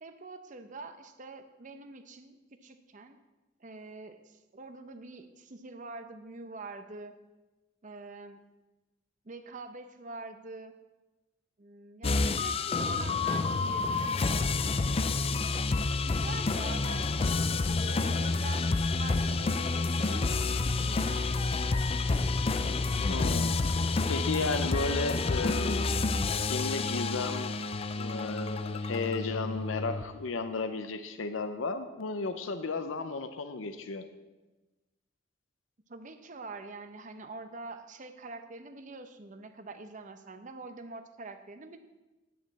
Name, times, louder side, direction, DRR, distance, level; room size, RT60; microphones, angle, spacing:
voice 1, 0.0-3.2 3.6-7.1 7.8-8.4 9.2-10.7 11.6-14.6 15.3-15.4 16.1-20.3 20.8-21.5 35.9-41.8, right 3 dB, 40° right, 8 dB, 0.7 m, -45 dB
sound 1, 12.0-30.0, left 3 dB, 30° left, 0.4 m, -29 dB
voice 2, 23.1-23.6 24.1-25.9 26.5-27.6 28.0-34.0, left 3 dB, 85° left, 9 dB, 0.6 m, -34 dB
10.5 x 9.4 x 4.2 m, 1.1 s
head